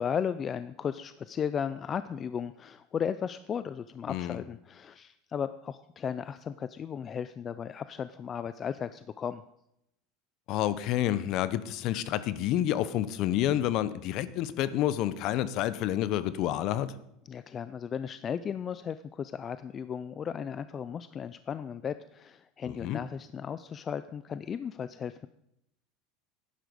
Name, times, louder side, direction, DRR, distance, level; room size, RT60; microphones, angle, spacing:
voice 1, 0.0-9.4 17.3-25.3, left 7 dB, 25° left, 13 dB, 0.4 m, -35 dB
voice 2, 4.1-4.4 10.5-16.9 22.7-23.0, left 12 dB, 50° left, 16 dB, 0.7 m, -29 dB
11.5 x 10.0 x 5.2 m, 0.78 s
supercardioid pair, 145°, 0 cm